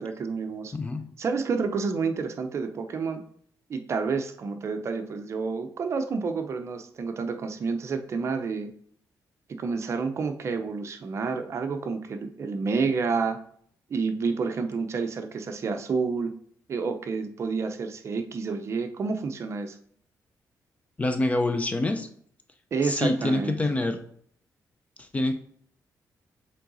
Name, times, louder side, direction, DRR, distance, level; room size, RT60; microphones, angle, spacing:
voice 1, 0.0-0.7 1.2-3.2 3.7-8.7 9.5-13.4 13.9-16.3 16.7-19.8 22.7-23.6, right 4 dB, 45° right, 7 dB, 0.6 m, -29 dB
voice 2, 0.7-1.1 21.0-22.1 22.8-24.0 25.0-25.4, left 2 dB, 20° left, 8 dB, 0.5 m, -26 dB
7.4 x 3.8 x 4.0 m, 0.62 s
cardioid pair, 140°, 7 cm